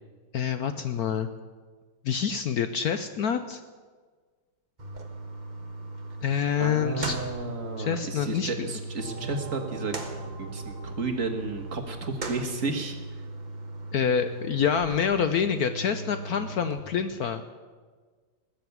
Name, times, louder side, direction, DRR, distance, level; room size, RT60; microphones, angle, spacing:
voice 1, 0.3-1.3 2.0-3.6 6.2-7.2 7.8-8.7 13.9-17.4, left 7 dB, 65° left, 10 dB, 1.0 m, -27 dB
sound 1, 4.8-16.8, right 2 dB, 25° right, 1.3 m, -38 dB
voice 2, 6.6-9.9 10.4-13.2, right 3 dB, 45° right, 4 dB, 1.7 m, -33 dB
sound 2, 9.0-13.4, right 5 dB, 80° right, 2.0 m, -44 dB
20.0 x 7.1 x 9.3 m, 1.5 s
omnidirectional pair, 2.1 m